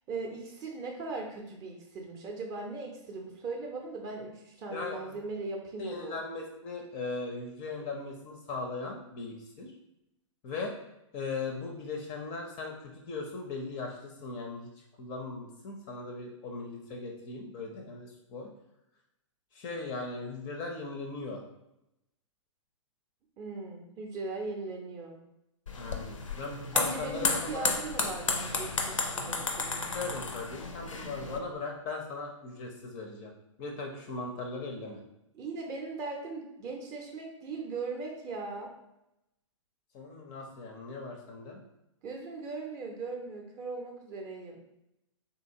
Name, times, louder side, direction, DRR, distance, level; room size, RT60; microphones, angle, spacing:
voice 1, 0.1-6.2 23.4-25.2 26.7-29.9 35.3-38.7 42.0-44.6, right 3 dB, 20° right, 1 dB, 0.5 m, -39 dB
voice 2, 4.7-5.2 5.8-9.7 10.4-10.7 11.1-14.7 15.0-18.5 19.5-21.4 25.8-27.7 29.9-33.3 33.6-35.0 39.9-41.6, left 3 dB, 25° left, 2 dB, 0.5 m, -38 dB
sound 1, 25.7-31.4, left 4 dB, 75° left, 0.5 m, -33 dB
3.8 x 2.8 x 2.6 m, 0.86 s
figure-of-eight pair, 115°, 16 cm